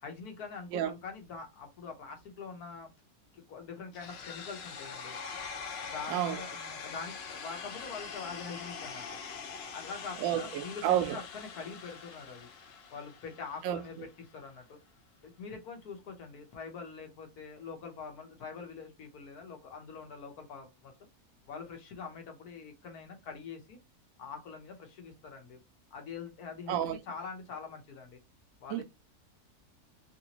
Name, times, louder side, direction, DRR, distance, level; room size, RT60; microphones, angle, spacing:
voice 1, 0.0-2.9 3.3-5.2 5.8-9.2 9.7-12.5 12.9-14.8 15.2-20.9 21.5-23.8 24.2-25.6 25.9-28.2 28.6-28.8, left 5 dB, 75° left, 1.5 m, -44 dB
sound 1, 3.9-13.9, left 5 dB, 60° left, 0.7 m, -43 dB
voice 2, 6.1-6.4 10.2-11.2 13.6-13.8 26.7-27.0 28.7-28.8, right 11 dB, 70° right, 0.9 m, -30 dB
3.3 x 2.9 x 2.8 m
omnidirectional pair, 1.6 m